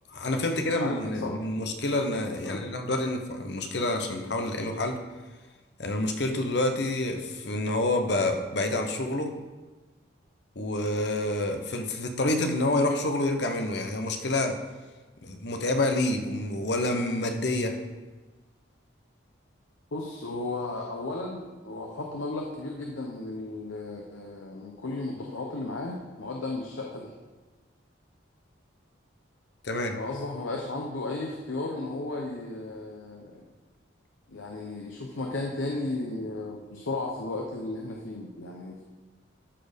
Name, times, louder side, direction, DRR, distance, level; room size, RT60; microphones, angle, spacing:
voice 1, 0.1-5.0 5.8-9.3 10.6-14.6 15.2-17.8 29.6-30.0, left 2 dB, 60° left, 5 dB, 0.9 m, -28 dB
voice 2, 0.7-1.3 2.5-2.7 19.9-27.1 30.0-33.5 34.3-38.8, left 2 dB, 85° left, 0 dB, 0.9 m, -34 dB
13.0 x 4.4 x 5.2 m, 1.3 s
head